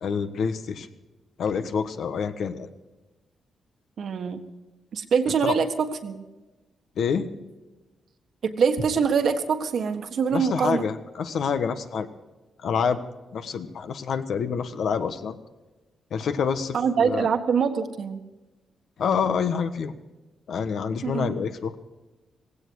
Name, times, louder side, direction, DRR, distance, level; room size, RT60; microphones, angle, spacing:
voice 1, 0.0-0.9 1.4-2.7 5.4-5.5 7.0-7.3 10.3-12.1 12.6-13.0 13.3-15.4 16.1-17.3 19.0-20.0 20.5-21.8, left 6 dB, 70° left, 9 dB, 1.3 m, -27 dB
voice 2, 4.0-4.4 4.9-6.2 8.4-10.9 16.7-18.2 21.0-21.4, right 6 dB, 60° right, 7 dB, 1.6 m, -24 dB
17.0 x 16.5 x 4.8 m, 1.1 s
cardioid pair, 120°, 0 cm